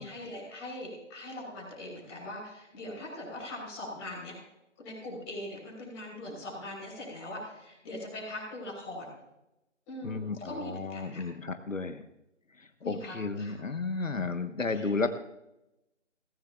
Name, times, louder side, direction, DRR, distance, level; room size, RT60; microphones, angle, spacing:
voice 1, 0.0-4.3 4.8-9.2 9.9-11.2 12.8-13.5 14.7-15.0, left 1 dB, 5° left, -9 dB, 4.1 m, -41 dB
voice 2, 10.0-12.0 12.6-15.1, left 3 dB, 85° left, 8 dB, 1.4 m, -33 dB
19.0 x 15.0 x 2.5 m, 0.89 s
figure-of-eight pair, 175°, 38 cm